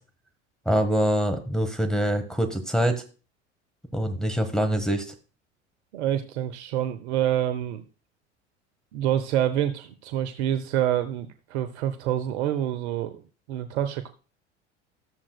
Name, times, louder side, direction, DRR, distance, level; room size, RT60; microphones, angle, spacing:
voice 1, 0.6-3.0 3.9-5.1, equal, ahead, 4 dB, 1.2 m, -24 dB
voice 2, 5.9-7.8 8.9-13.2 13.5-14.1, right 11 dB, 70° right, 10 dB, 0.8 m, -27 dB
13.5 x 7.3 x 2.2 m, 0.34 s
hypercardioid pair, 80°, 35 cm